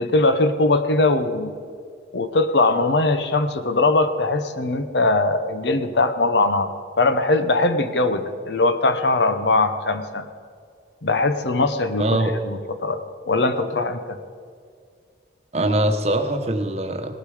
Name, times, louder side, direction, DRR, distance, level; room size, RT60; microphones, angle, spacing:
voice 1, 0.0-1.5 2.1-6.7 7.0-10.3 11.0-12.2 12.4-13.0 13.3-14.2, left 2 dB, 70° left, 10 dB, 0.8 m, -20 dB
voice 2, 12.0-12.4 15.5-17.1, right 1 dB, 35° right, 6 dB, 1.0 m, -22 dB
18.0 x 12.0 x 4.9 m, 2.2 s
head